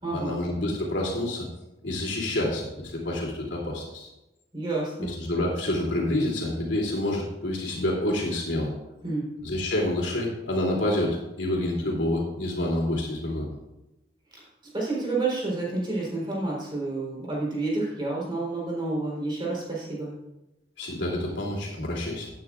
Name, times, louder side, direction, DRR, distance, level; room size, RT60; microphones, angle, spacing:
voice 1, 0.1-1.5 1.8-4.1 5.0-8.7 9.4-13.5 20.8-22.3, left 1 dB, 75° left, -3 dB, 3.0 m, -28 dB
voice 2, 4.5-5.1 9.0-9.3 14.3-14.4 14.7-20.1, right 2 dB, 25° right, -4 dB, 3.9 m, -29 dB
15.5 x 9.2 x 2.5 m, 0.97 s
head